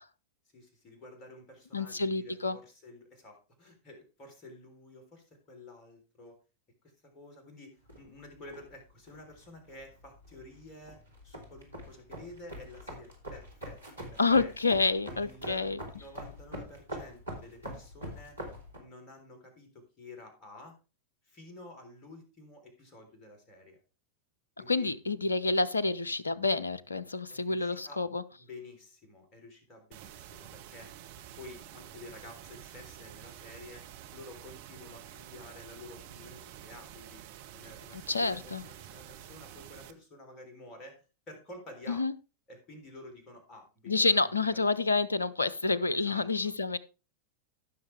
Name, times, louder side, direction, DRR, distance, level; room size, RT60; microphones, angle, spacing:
voice 1, 0.5-6.4 6.8-11.0 11.2-14.5 15.1-15.7 15.9-18.4 18.8-20.8 21.2-23.8 24.6-24.9 27.3-28.0 28.4-30.9 31.4-37.2 37.5-42.1 42.5-44.8 45.9-46.3, left 2 dB, 30° left, 4 dB, 3.7 m, -51 dB
voice 2, 1.7-2.6 14.2-15.8 24.7-28.2 37.9-38.6 41.9-42.1 43.9-46.8, left 3 dB, 80° left, 18 dB, 0.6 m, -28 dB
sound 1, 7.9-18.8, equal, 80° right, 3.2 m, -45 dB
sound 2, 29.9-39.9, right 11 dB, 50° right, 1.0 m, -49 dB
15.0 x 6.4 x 3.4 m, 0.31 s
figure-of-eight pair, 90°, 0 cm